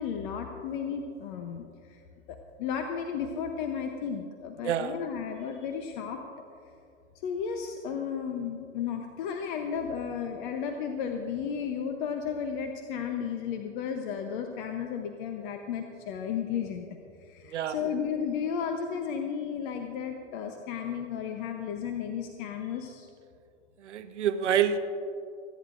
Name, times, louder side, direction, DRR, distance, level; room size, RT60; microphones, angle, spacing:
voice 1, 0.0-2.0 2.3-6.2 7.2-16.9 17.2-23.1, left 7 dB, 45° left, 4 dB, 0.9 m, -34 dB
voice 2, 4.6-5.0 17.5-17.8 23.8-24.8, right 9 dB, 80° right, 9 dB, 1.0 m, -27 dB
30.0 x 10.5 x 2.6 m, 2.5 s
hypercardioid pair, 130°, 35 cm